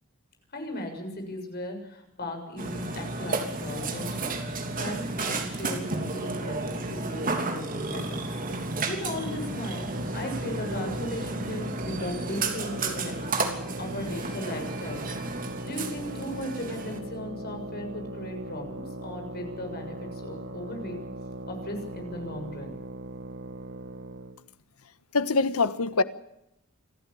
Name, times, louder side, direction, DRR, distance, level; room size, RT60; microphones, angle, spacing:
voice 1, 0.5-4.3 4.7-8.3 8.8-15.0 15.3-21.0 21.5-22.7, left 1 dB, 45° left, 7.0 m, -37 dB
Burping eructation, 2.6-17.0, right 3 dB, 40° right, 3.3 m, -32 dB
sound 1, 9.9-24.4, right 1 dB, 55° right, 1.9 m, -39 dB
voice 2, 25.1-26.0, left 3 dB, 90° left, 1.3 m, -24 dB
27.0 x 15.0 x 8.6 m
head